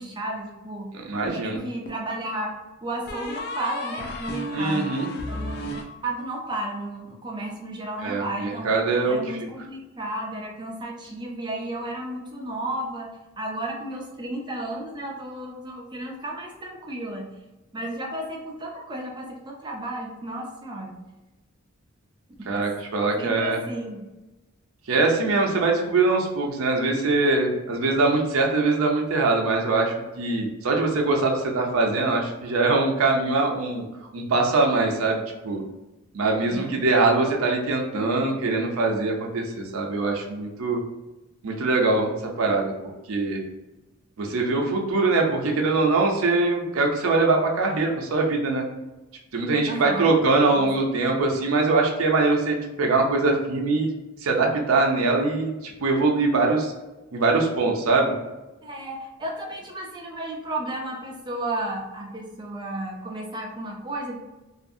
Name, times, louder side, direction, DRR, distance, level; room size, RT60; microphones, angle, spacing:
voice 1, 0.0-0.9 1.2-4.9 5.3-5.8 6.0-8.7 9.1-17.3 17.7-21.0 22.5-22.7 23.2-24.1 36.5-36.8 49.7-50.1 50.5-51.3 58.6-64.2, right 1 dB, 20° right, 0 dB, 0.5 m, -33 dB
voice 2, 1.1-1.6 4.5-5.1 8.0-9.5 22.5-23.6 24.9-33.8 34.1-35.6 36.1-40.8 41.4-42.7 43.1-43.4 44.2-48.7 49.3-53.9 54.2-56.7 57.1-58.1, right 3 dB, 80° right, 1 dB, 0.5 m, -22 dB
sound 1, 1.3-2.1 3.1-6.6, left 1 dB, 50° left, 0.4 m, -34 dB
2.7 x 2.5 x 2.5 m, 1.0 s
head